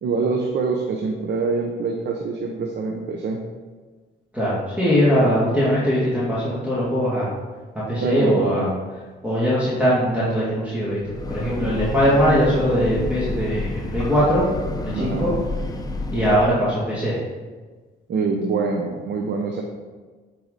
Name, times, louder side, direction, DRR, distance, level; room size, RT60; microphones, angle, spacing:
voice 1, 0.0-3.4 8.0-8.7 14.9-15.4 18.1-19.6, right 4 dB, 60° right, 2 dB, 0.9 m, -25 dB
voice 2, 4.3-7.3 7.9-8.7 9.2-11.0 11.3-14.5 14.8-15.3 16.1-17.2, equal, 5° right, -9 dB, 2.3 m, -20 dB
Breathing / Train, 10.9-16.7, left 2 dB, 20° left, 0.7 m, -29 dB
9.0 x 4.8 x 4.1 m, 1.4 s
cardioid pair, 90°, 20 cm